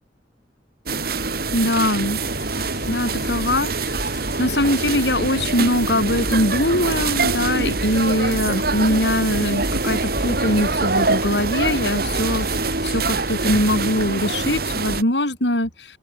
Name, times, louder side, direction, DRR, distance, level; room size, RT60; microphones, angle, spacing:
sound 1, 0.9-15.0, right 3 dB, 60° right, 3.9 m, -24 dB
voice 1, 1.5-2.2 2.9-15.9, left 1 dB, 80° left, 7.7 m, -22 dB
sound 2, 2.1-14.1, left 2 dB, 65° left, 5.7 m, -40 dB
open air
head